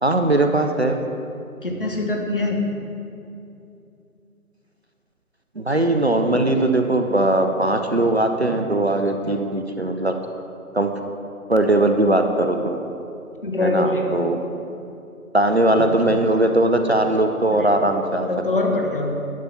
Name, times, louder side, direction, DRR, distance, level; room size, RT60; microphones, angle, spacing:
voice 1, 0.0-1.0 5.6-10.1 10.7-10.9 11.5-12.8 13.6-14.4 15.3-18.3, right 1 dB, 50° right, 5 dB, 0.5 m, -19 dB
voice 2, 1.6-2.6 13.4-14.2 17.5-17.7 18.3-19.1, left 2 dB, 35° left, 1 dB, 0.9 m, -23 dB
10.5 x 5.3 x 5.8 m, 2.6 s
figure-of-eight pair, 155°, 45 cm